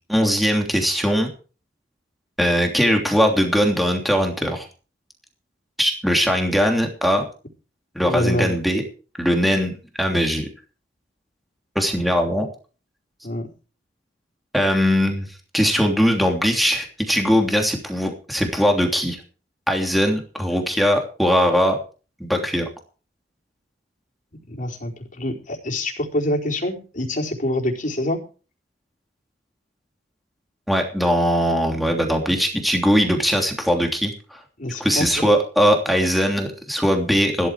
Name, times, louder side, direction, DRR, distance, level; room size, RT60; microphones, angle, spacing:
voice 1, 0.1-1.3 2.4-4.7 5.8-7.2 7.9-8.8 9.2-10.5 11.7-12.5 14.5-15.3 15.5-19.2 19.7-21.8 22.2-22.6 30.7-34.4 34.8-37.5, equal, ahead, 2 dB, 3.0 m, -20 dB
voice 2, 8.0-8.5 13.2-13.5 24.5-28.2 34.6-35.1, left 1 dB, 45° left, -1 dB, 4.5 m, -25 dB
16.0 x 13.5 x 4.8 m, 0.36 s
head